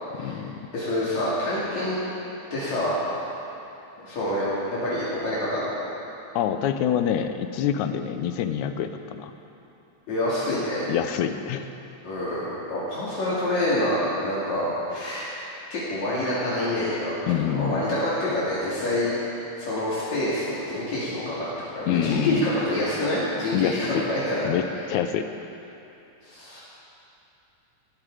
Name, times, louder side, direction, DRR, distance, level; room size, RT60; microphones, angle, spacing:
voice 1, 0.2-0.6 6.4-9.3 10.9-11.7 17.3-18.0 21.9-22.5 23.5-24.1 24.4-25.3, left 9 dB, 85° left, 9 dB, 2.2 m, -26 dB
voice 2, 0.7-2.0 2.5-3.0 4.0-5.7 10.1-10.9 12.0-15.3 15.7-17.1 17.5-19.1 19.6-24.4 26.2-26.6, left 1 dB, 70° left, -9 dB, 4.0 m, -27 dB
19.0 x 14.5 x 4.9 m, 2.9 s
omnidirectional pair, 3.3 m